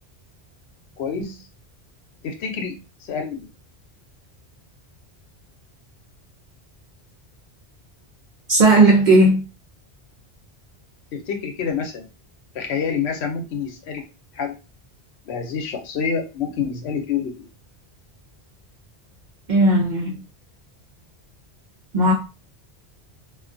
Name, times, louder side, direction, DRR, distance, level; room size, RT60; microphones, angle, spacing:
voice 1, 1.0-1.4 2.2-3.5 11.1-12.1 12.5-14.0 14.3-14.5 15.3-17.5, left 6 dB, 75° left, 0.9 m, -27 dB
voice 2, 8.5-9.5 19.5-20.2 21.9-22.1, right 2 dB, 60° right, 0.5 m, -15 dB
2.3 x 2.2 x 2.5 m
omnidirectional pair, 1.1 m